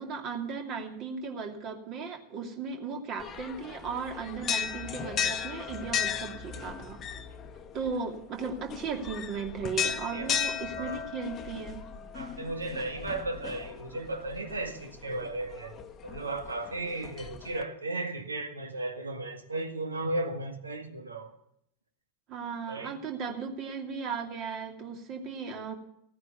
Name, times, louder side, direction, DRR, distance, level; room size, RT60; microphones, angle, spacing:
voice 1, 0.0-7.0 7.7-11.8 22.3-25.8, right 5 dB, 35° right, 2.6 m, -36 dB
sound 1, 3.2-17.6, left 8 dB, 25° left, 1.1 m, -36 dB
voice 2, 12.1-21.3 22.7-23.0, right 2 dB, 75° right, 1.9 m, -35 dB
16.0 x 9.6 x 7.1 m
figure-of-eight pair, 90°, 0 cm